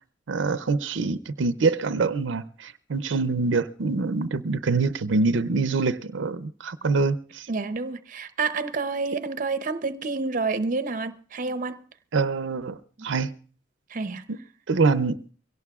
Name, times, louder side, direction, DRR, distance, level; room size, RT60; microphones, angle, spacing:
voice 1, 0.3-7.5 12.1-12.8 13.0-13.3 14.3-14.4 14.7-15.2, right 4 dB, 85° right, 0.5 m, -25 dB
voice 2, 7.5-11.8 13.0-13.1 13.9-14.2, right 4 dB, 45° right, 0.6 m, -29 dB
23.5 x 17.0 x 2.3 m
head